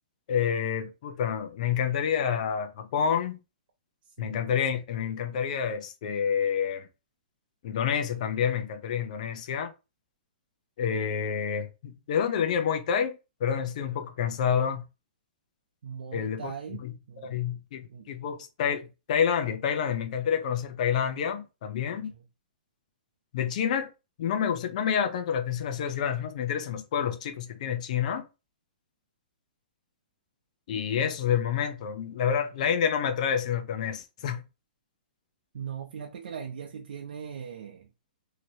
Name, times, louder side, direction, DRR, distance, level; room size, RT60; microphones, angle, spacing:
voice 1, 0.3-3.4 4.2-6.9 7.6-9.7 10.8-14.8 16.1-16.5 16.8-16.9 17.2-22.1 23.3-23.9 24.2-28.2 30.7-34.4, left 8 dB, 50° left, 0.7 m, -28 dB
voice 2, 15.8-17.5 17.9-18.1 21.9-22.2 35.5-37.9, right 7 dB, 70° right, 0.6 m, -40 dB
2.9 x 2.9 x 2.8 m
hypercardioid pair, 155°, 5 cm